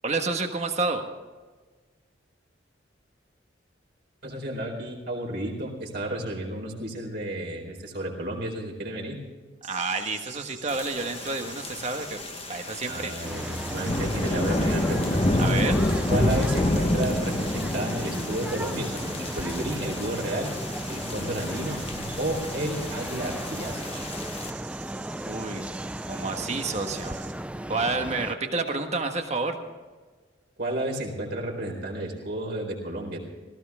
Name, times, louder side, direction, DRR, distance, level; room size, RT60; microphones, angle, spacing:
voice 1, 0.0-1.0 9.6-12.2 12.5-13.1 15.4-15.8 25.3-25.6 26.1-27.2 27.7-29.6, right 3 dB, 35° right, 5 dB, 1.5 m, -29 dB
voice 2, 4.2-9.2 12.8-15.4 16.1-20.5 20.9-21.8 22.2-24.1 30.6-33.2, right 1 dB, 60° right, -1 dB, 4.4 m, -32 dB
sound 1, 9.6-27.3, right 8 dB, 80° right, 2.7 m, -45 dB
sound 2, 10.7-24.5, left 1 dB, 30° left, 1.1 m, -29 dB
sound 3, 13.2-28.4, right 1 dB, 5° right, 0.4 m, -35 dB
18.5 x 16.0 x 3.6 m, 1.4 s
head